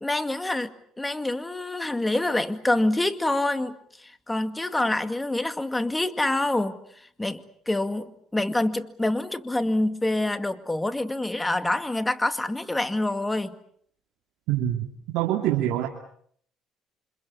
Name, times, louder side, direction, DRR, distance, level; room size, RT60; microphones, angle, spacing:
voice 1, 0.0-6.8 7.2-13.6, left 2 dB, 10° left, 2.1 m, -26 dB
voice 2, 14.5-14.9 15.1-15.9, right 12 dB, 75° right, 2.8 m, -24 dB
29.0 x 26.0 x 7.0 m
supercardioid pair, 90°, 0 cm